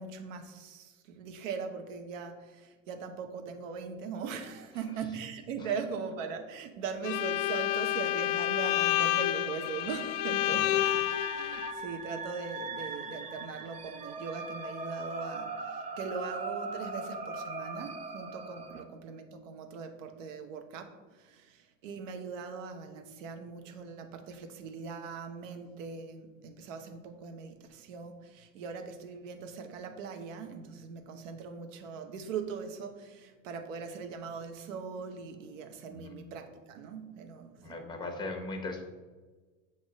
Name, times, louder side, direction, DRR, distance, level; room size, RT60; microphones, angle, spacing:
voice 1, 0.0-37.8, right 5 dB, 70° right, 6 dB, 1.0 m, -40 dB
Bowed string instrument, 7.0-11.7, left 15 dB, 40° left, 0.4 m, -29 dB
sound 1, 10.7-18.8, right 3 dB, 20° right, 0.7 m, -40 dB
voice 2, 37.6-38.9, left 2 dB, 10° left, 3 dB, 1.2 m, -39 dB
7.8 x 3.0 x 6.2 m, 1.3 s
hypercardioid pair, 80°, 40 cm